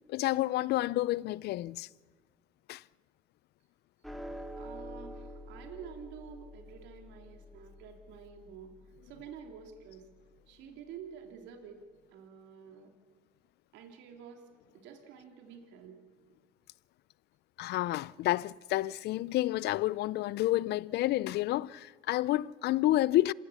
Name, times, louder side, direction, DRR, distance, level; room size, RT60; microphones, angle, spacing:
voice 1, 0.1-1.9 2.7-2.8 17.6-23.3, left 16 dB, 60° left, 0.5 m, -29 dB
sound 1, 4.0-10.6, equal, ahead, 2.5 m, -48 dB
voice 2, 4.6-8.8 9.0-10.1 10.5-12.9 13.7-14.5 14.7-16.0, right 7 dB, 70° right, 2.8 m, -49 dB
27.0 x 16.0 x 7.1 m
supercardioid pair, 80°, 19 cm